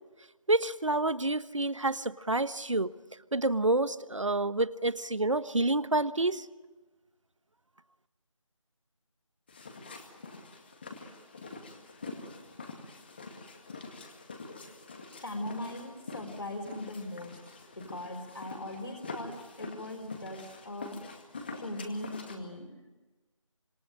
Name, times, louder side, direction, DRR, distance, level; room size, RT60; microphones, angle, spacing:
voice 1, 0.5-2.9 3.3-6.5, right 2 dB, 70° right, 15 dB, 1.2 m, -28 dB
sound 1, 9.5-22.4, left 3 dB, 20° left, 2.0 m, -45 dB
voice 2, 15.2-17.4 17.7-21.0 21.5-22.9, left 1 dB, 55° left, 0 dB, 4.6 m, -40 dB
26.0 x 24.0 x 9.1 m, 1.2 s
figure-of-eight pair, 165°, 17 cm